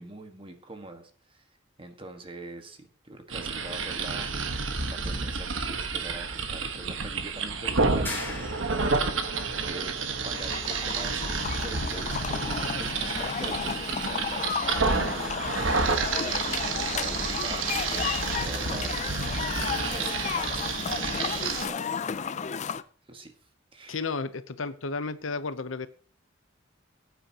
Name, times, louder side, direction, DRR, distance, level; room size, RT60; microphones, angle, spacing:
voice 1, 0.0-1.4 1.8-4.3 4.9-8.6 9.6-9.9 10.2-11.3 11.6-14.5 14.9-15.4 15.9-19.3 19.7-21.9 22.3-22.5 23.1-23.3 23.7-24.0, right 2 dB, 25° right, 6 dB, 1.6 m, -43 dB
sound 1, 3.3-21.7, right 4 dB, 75° right, 1.3 m, -30 dB
sound 2, 8.0-9.1, left 3 dB, 10° left, 3.2 m, -37 dB
sound 3, 10.2-22.8, left 6 dB, 35° left, 0.5 m, -33 dB
voice 2, 23.9-25.9, left 4 dB, 80° left, 13 dB, 0.8 m, -32 dB
18.5 x 9.2 x 2.9 m, 0.41 s
head